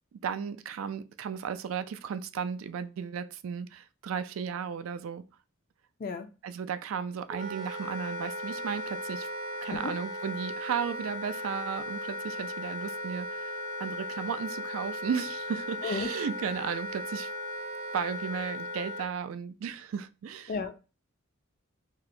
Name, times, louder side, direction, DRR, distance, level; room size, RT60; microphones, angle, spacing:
voice 1, 0.1-5.2 6.4-9.3 9.6-13.5 13.8-17.3 17.9-20.5, right 7 dB, 75° right, 0.3 m, -35 dB
Wind instrument woodwind instrument, 7.3-19.1, left 1 dB, 35° right, 0.7 m, -37 dB
voice 2, 20.5-20.8, left 4 dB, 40° left, 0.4 m, -33 dB
4.3 x 2.1 x 2.5 m
head